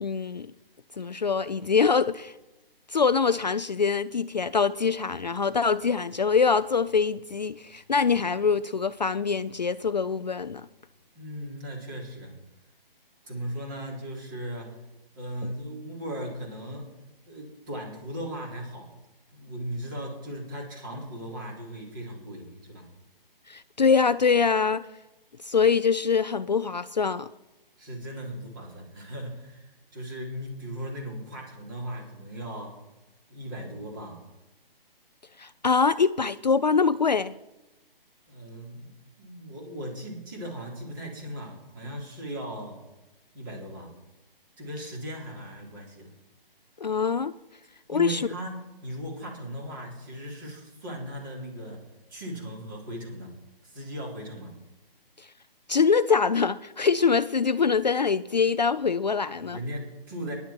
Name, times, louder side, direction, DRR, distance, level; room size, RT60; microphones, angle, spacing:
voice 1, 0.0-0.5 1.0-2.3 2.9-10.7 23.5-24.8 25.4-27.3 35.4-37.3 46.8-47.3 47.9-48.2 55.2-55.3 55.7-59.6, left 5 dB, 50° left, 0.5 m, -24 dB
voice 2, 11.1-12.3 13.2-14.8 15.1-16.9 17.3-18.9 19.3-22.9 27.8-32.8 33.3-34.2 38.3-38.9 39.2-42.8 43.3-43.9 44.6-46.1 47.9-53.3 53.6-54.5 59.4-60.4, equal, 20° right, 3.6 m, -38 dB
23.5 x 11.0 x 4.6 m
hypercardioid pair, 175°, 29 cm